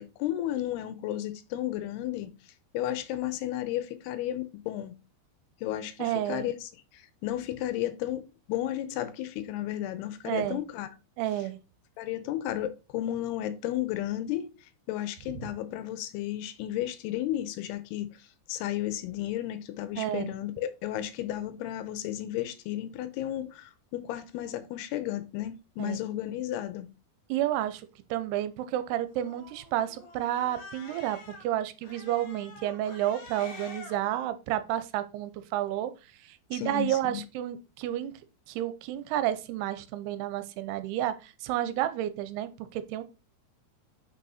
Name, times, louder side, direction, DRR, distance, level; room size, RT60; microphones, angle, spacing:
voice 1, 0.0-2.3 2.7-4.9 5.6-10.9 12.0-14.5 14.9-26.9 36.5-37.2, left 13 dB, 90° left, 2.7 m, -33 dB
voice 2, 6.0-6.5 10.3-10.6 11.2-11.6 20.0-20.3 25.8-26.0 27.3-35.9 36.2-38.1 38.5-43.0, right 12 dB, 80° right, 2.7 m, -31 dB
Cat, 29.1-31.4 31.8-34.0, left 3 dB, 55° left, 2.9 m, -47 dB
6.0 x 5.5 x 4.1 m
omnidirectional pair, 4.7 m